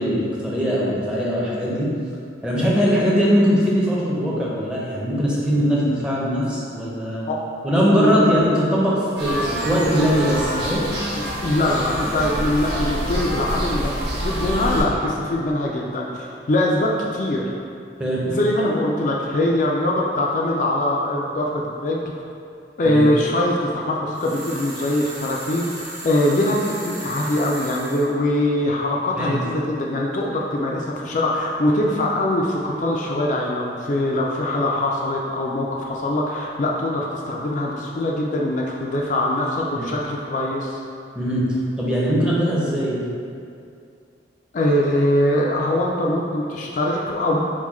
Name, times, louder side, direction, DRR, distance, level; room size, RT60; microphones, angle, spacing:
voice 1, 0.0-1.9 2.4-7.3 7.6-10.9 18.0-18.2 22.8-23.0 29.2-29.4 39.7-39.8 41.1-41.5 41.8-43.0, equal, 5° right, -6 dB, 0.6 m, -21 dB
voice 2, 7.9-8.3 11.4-17.4 18.2-22.0 22.8-40.8 44.5-47.4, left 1 dB, 45° left, -2 dB, 0.3 m, -22 dB
sound 1, 9.2-14.8, equal, 70° right, 1.3 m, -26 dB
sound 2, 24.1-28.1, right 1 dB, 45° right, 1.1 m, -36 dB
4.6 x 2.2 x 4.2 m, 2.4 s
head